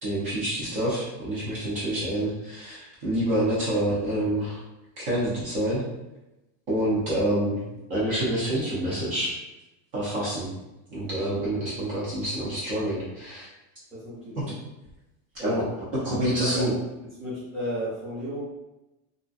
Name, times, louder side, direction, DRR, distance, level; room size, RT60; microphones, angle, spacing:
voice 1, 0.0-2.8 3.0-4.6 5.0-5.8 6.7-7.6 7.9-9.3 9.9-10.5 10.9-13.5 14.4-14.5 15.3-15.7 15.9-16.7, right 1 dB, 40° right, -7 dB, 0.7 m, -27 dB
voice 2, 1.8-2.2 13.9-14.5 16.1-16.7 17.2-18.4, equal, ahead, -13 dB, 0.8 m, -34 dB
2.5 x 2.1 x 2.4 m, 0.98 s
supercardioid pair, 175°, 42 cm